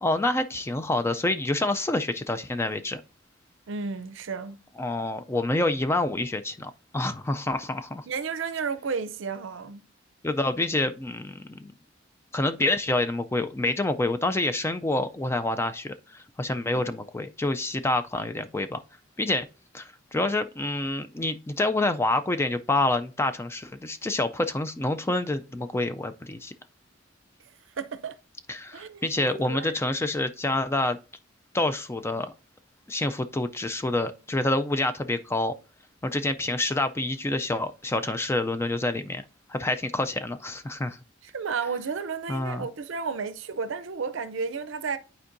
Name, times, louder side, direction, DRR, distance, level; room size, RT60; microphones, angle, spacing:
voice 1, 0.0-3.0 4.8-8.0 10.2-11.7 12.3-18.8 19.2-19.5 19.7-26.5 28.5-31.0 31.5-32.3 32.9-35.5 36.0-39.2 39.5-41.0 42.3-42.7, left 2 dB, 10° left, 0.3 m, -27 dB
voice 2, 3.7-4.6 8.1-9.8 27.8-28.2 28.7-29.7 41.2-45.0, right 5 dB, 65° right, 0.5 m, -32 dB
11.0 x 4.5 x 2.6 m
head